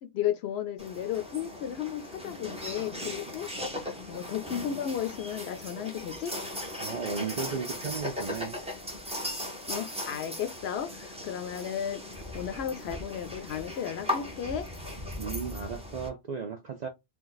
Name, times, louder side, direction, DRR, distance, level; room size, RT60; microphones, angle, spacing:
voice 1, 0.0-3.5 3.8-6.4 9.7-14.7, left 9 dB, 70° left, 0.8 m, -34 dB
sound 1, 0.8-16.1, left 1 dB, 5° right, 0.5 m, -38 dB
voice 2, 6.8-8.6 15.2-16.9, right 6 dB, 60° right, 0.4 m, -35 dB
2.6 x 2.3 x 3.9 m
omnidirectional pair, 1.2 m